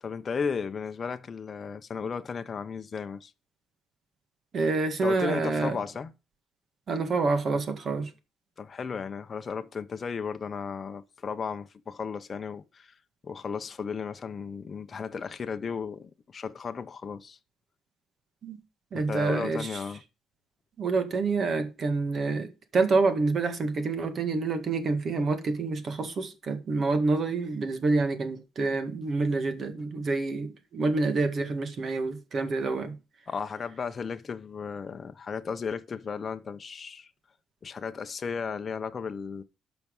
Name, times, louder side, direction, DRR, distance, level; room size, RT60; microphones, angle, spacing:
voice 1, 0.0-3.3 5.0-6.1 8.6-13.0 13.2-17.4 18.9-20.0 33.3-37.1 37.6-39.4, left 5 dB, 35° left, 0.8 m, -35 dB
voice 2, 4.5-5.8 6.9-8.1 18.4-18.6 18.9-19.7 20.8-33.0, right 3 dB, 40° right, 1.9 m, -27 dB
11.5 x 6.1 x 5.4 m
cardioid pair, 130°, 0 cm